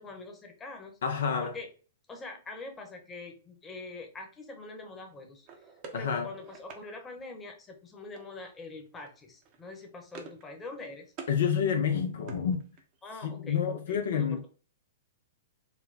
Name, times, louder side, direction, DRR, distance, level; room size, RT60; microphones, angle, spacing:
voice 1, 0.0-1.0 1.4-1.7 2.1-5.5 5.9-11.1 13.0-14.5, left 3 dB, 15° left, 1.0 m, -44 dB
voice 2, 1.0-1.5 5.9-6.3 11.3-12.6 13.2-14.5, left 7 dB, 65° left, 0.6 m, -28 dB
sound 1, 5.4-6.9 8.2-8.6 8.8-9.1 9.4-10.5 10.7-11.4 11.8-13.0, right 5 dB, 40° right, 0.9 m, -48 dB
4.2 x 2.2 x 4.1 m
figure-of-eight pair, 110°, 0 cm